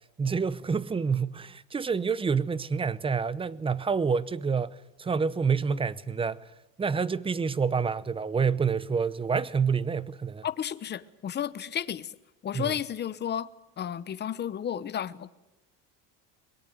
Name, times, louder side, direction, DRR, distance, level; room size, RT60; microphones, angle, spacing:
voice 1, 0.2-6.4 6.8-10.4 12.5-12.7, right 5 dB, 15° right, 0.8 m, -28 dB
voice 2, 10.4-12.1 12.4-13.5 13.8-15.3, left 9 dB, 25° left, 1.0 m, -32 dB
23.0 x 22.0 x 7.9 m
cardioid pair, 150°, 39 cm